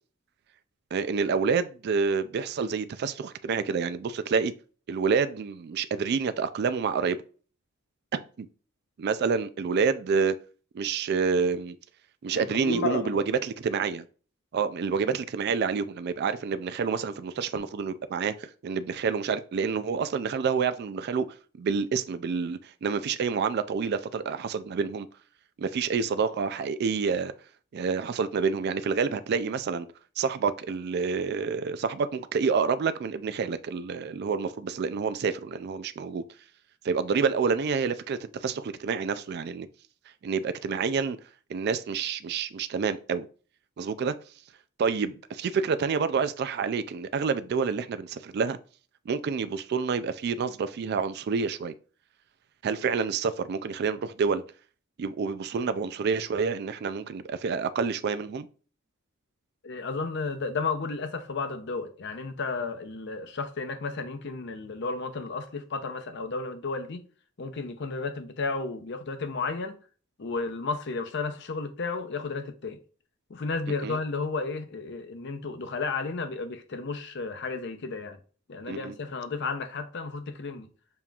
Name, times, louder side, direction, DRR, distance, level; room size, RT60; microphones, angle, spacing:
voice 1, 0.9-4.5 4.9-7.2 8.1-8.5 9.0-10.4 10.7-11.8 12.2-14.1 14.5-21.3 21.6-25.1 25.6-27.3 27.7-29.9 30.2-36.2 36.8-39.7 40.2-41.2 41.5-43.3 43.8-44.2 44.8-48.6 49.1-51.7 52.6-54.4 55.0-58.5 73.8-74.0 78.7-78.9, right 5 dB, 50° right, 0.3 m, -28 dB
voice 2, 12.3-13.2 59.6-67.0 67.4-69.8 70.2-72.8 73.3-78.2 78.5-80.7, left 4 dB, 55° left, 0.6 m, -33 dB
6.9 x 2.9 x 2.4 m
head